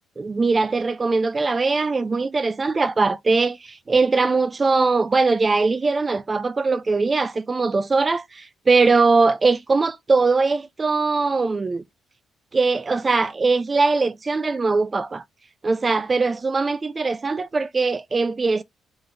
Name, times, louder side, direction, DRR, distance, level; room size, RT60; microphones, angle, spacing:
voice 1, 0.2-11.8 12.5-15.2 15.6-18.6, right 3 dB, 20° right, 0.5 m, -21 dB
4.0 x 3.9 x 3.3 m
cardioid pair, 170°, 0 cm